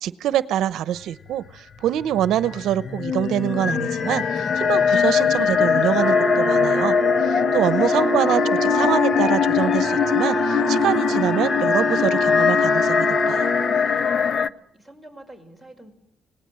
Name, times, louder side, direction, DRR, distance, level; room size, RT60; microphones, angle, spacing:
voice 1, 0.0-6.9 7.2-13.5, right 11 dB, 80° right, 16 dB, 0.8 m, -25 dB
sound 1, 1.9-14.5, left 7 dB, 50° left, 0.8 m, -21 dB
Wind instrument woodwind instrument, 5.9-13.9, right 5 dB, 15° right, 1.3 m, -27 dB
voice 2, 14.1-15.9, right 1 dB, 10° left, 8 dB, 5.4 m, -46 dB
26.0 x 19.0 x 7.7 m, 0.82 s
cardioid pair, 90°, 0 cm